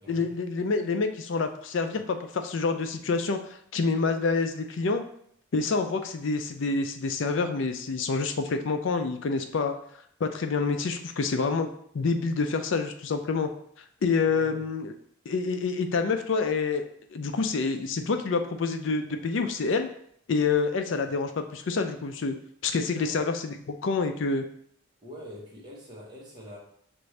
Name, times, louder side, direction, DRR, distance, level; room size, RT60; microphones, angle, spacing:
voice 1, 0.1-5.0 5.5-9.7 10.2-11.7 11.9-13.5 14.0-14.9 15.3-16.8 17.1-19.9 20.3-22.3 22.6-24.4, left 4 dB, 65° left, 7 dB, 0.4 m, -27 dB
voice 2, 14.3-14.7 21.1-21.2 22.9-23.2 25.0-26.6, equal, 20° right, -4 dB, 1.1 m, -45 dB
5.9 x 2.6 x 3.2 m, 0.66 s
head